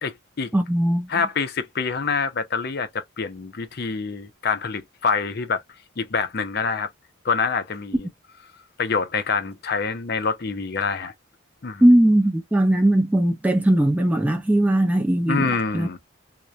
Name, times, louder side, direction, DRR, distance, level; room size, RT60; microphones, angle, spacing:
voice 1, 0.0-0.5 1.1-5.6 6.0-6.9 7.2-8.1 8.8-11.1 11.6-11.8 15.3-16.0, left 5 dB, 50° left, 0.6 m, -26 dB
voice 2, 0.5-1.1 11.8-15.9, right 1 dB, 5° right, 0.3 m, -19 dB
2.9 x 2.1 x 2.3 m
head